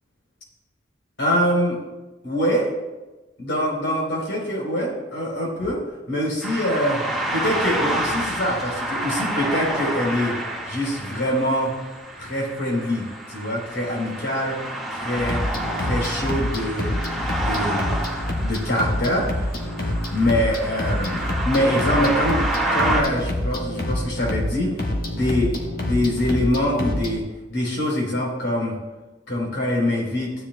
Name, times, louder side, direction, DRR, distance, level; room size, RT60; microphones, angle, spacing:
voice 1, 1.2-1.8 2.2-2.7 3.4-5.8 6.1-7.0 7.3-10.4 10.7-11.7 12.2-15.4 15.8-17.0 17.4-17.9 18.4-19.6 20.1-24.7 25.1-27.2 27.5-28.7 29.3-30.3, equal, 85° left, -2 dB, 3.9 m, -24 dB
sound 1, 6.4-23.0, right 1 dB, ahead, 1.7 m, -28 dB
sound 2, 15.2-27.2, left 1 dB, 50° left, 1.4 m, -27 dB
15.0 x 10.0 x 2.3 m, 1.1 s
head